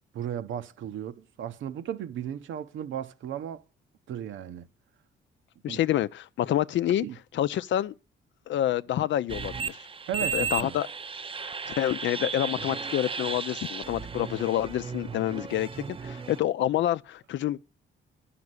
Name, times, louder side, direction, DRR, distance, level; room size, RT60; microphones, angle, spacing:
voice 1, 0.1-3.6 4.1-4.7 5.7-5.8 7.0-7.2 10.1-10.8, right 10 dB, 75° right, 1.0 m, -35 dB
voice 2, 5.6-7.1 7.3-7.9 8.5-9.8 10.3-10.9 11.4-17.6, left 12 dB, 70° left, 0.6 m, -28 dB
sound 1, 9.3-16.4, right 5 dB, 25° right, 0.7 m, -35 dB
11.0 x 6.0 x 7.9 m
cardioid pair, 90°, 20 cm